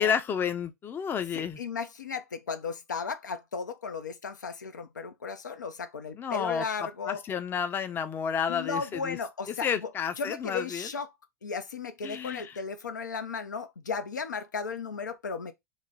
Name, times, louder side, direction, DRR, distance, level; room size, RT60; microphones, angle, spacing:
voice 1, 0.0-1.6 6.1-9.2 9.5-10.9 12.0-12.6, left 7 dB, 20° left, 0.5 m, -31 dB
voice 2, 1.3-7.2 8.5-9.9 10.2-11.1 11.4-15.5, left 5 dB, 85° left, 0.6 m, -35 dB
3.1 x 2.1 x 3.9 m
hypercardioid pair, 100°, 10 cm